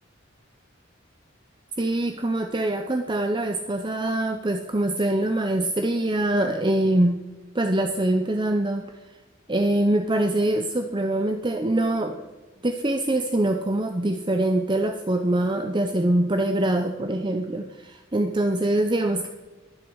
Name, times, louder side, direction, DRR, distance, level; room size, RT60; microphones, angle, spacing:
voice 1, 1.8-7.2 7.5-8.9 9.5-12.3 12.6-19.3, right 1 dB, 25° right, 5 dB, 0.8 m, -24 dB
22.0 x 8.2 x 6.3 m, 1.2 s
head